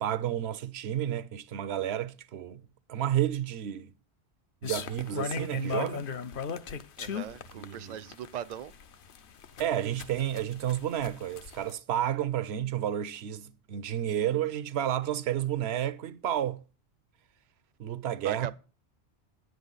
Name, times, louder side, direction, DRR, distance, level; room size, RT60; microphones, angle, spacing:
voice 1, 0.0-2.6 2.9-3.9 4.6-6.1 7.6-8.0 9.6-16.6 17.8-18.5, right 11 dB, 70° right, 0.9 m, -31 dB
sound 1, 4.6-11.7, left 6 dB, 55° left, 0.8 m, -37 dB
voice 2, 7.0-8.7 18.2-18.5, right 10 dB, 50° right, 0.5 m, -39 dB
10.5 x 8.0 x 3.9 m
omnidirectional pair, 1.2 m